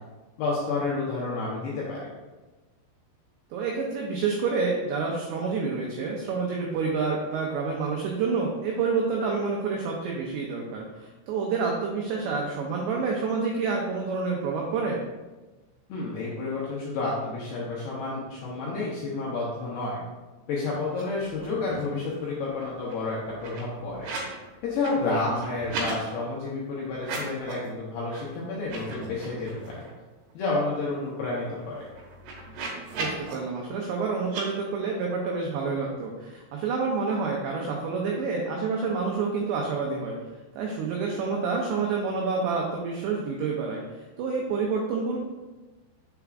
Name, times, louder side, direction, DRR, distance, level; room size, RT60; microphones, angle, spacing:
voice 1, 0.4-2.0 15.9-20.0 20.5-24.1 24.6-29.8 30.3-31.9, left 3 dB, 80° left, -5 dB, 2.4 m, -30 dB
voice 2, 3.5-15.0 25.1-25.2 33.0-40.2 40.6-43.8 44.2-45.2, right 4 dB, 90° right, -1 dB, 2.4 m, -28 dB
sound 1, 20.9-21.0 21.3-22.0 22.3-24.4 24.7-26.0 26.9-27.7 28.1-28.2 28.6-29.9 30.3-30.4 30.7-33.3 34.2-34.4, right 3 dB, 65° right, 3.0 m, -38 dB
7.0 x 6.8 x 2.4 m, 1.2 s
omnidirectional pair, 5.8 m